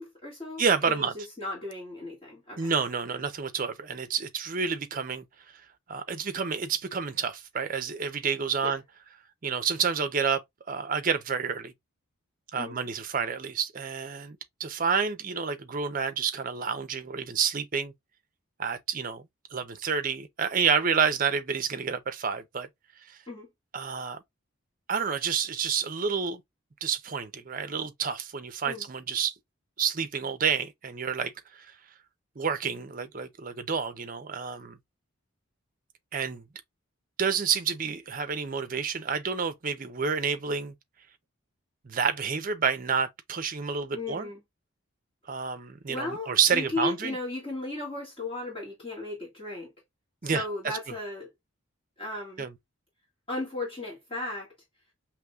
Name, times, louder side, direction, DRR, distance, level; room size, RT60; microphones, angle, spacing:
voice 1, 0.0-2.7 8.6-8.7 12.5-12.7 23.3-23.5 28.7-28.9 43.9-44.4 45.9-49.7 50.2-51.3 52.0-52.5 53.3-54.5, left 2 dB, 25° left, 1.8 m, -35 dB
voice 2, 0.6-1.1 2.6-5.2 5.9-8.8 9.4-10.4 10.7-11.7 12.5-17.9 18.6-19.2 19.5-22.7 23.7-24.2 24.9-26.4 26.8-29.3 29.8-31.7 32.4-34.8 36.1-36.4 37.2-40.7 41.8-44.3 45.3-47.2 50.2-50.8 52.4-52.5, right 6 dB, 40° right, 0.5 m, -29 dB
6.3 x 3.0 x 2.3 m
head